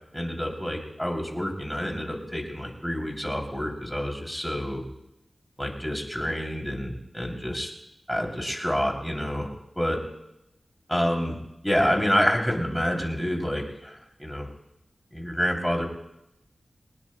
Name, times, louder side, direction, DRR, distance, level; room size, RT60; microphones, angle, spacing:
voice 1, 0.1-4.8 5.6-7.7 8.1-10.0 10.9-11.4 11.6-14.5 15.1-15.8, equal, ahead, 1 dB, 3.0 m, -28 dB
23.5 x 19.0 x 2.2 m, 0.85 s
wide cardioid pair, 100°, 0 cm